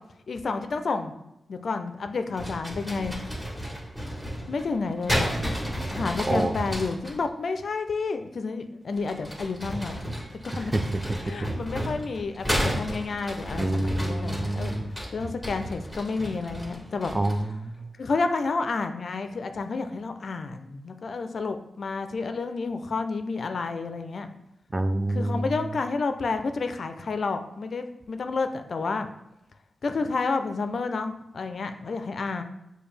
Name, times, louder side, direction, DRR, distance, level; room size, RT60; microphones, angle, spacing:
voice 1, 0.3-1.1 1.5-3.2 4.5-5.4 5.9-10.0 10.4-10.7 11.3-14.7 15.1-17.1 18.0-24.3 25.1-29.1 29.8-32.4, left 4 dB, 65° left, 8 dB, 0.4 m, -30 dB
sound 1, 2.3-7.2 8.9-17.5, equal, 5° right, 1.5 m, -32 dB
voice 2, 6.2-6.5 10.7-11.0 13.6-14.9 17.1-17.9 24.7-25.5, right 1 dB, 30° right, 9 dB, 0.3 m, -27 dB
6.8 x 2.3 x 3.3 m, 0.86 s
cardioid pair, 60°, 0 cm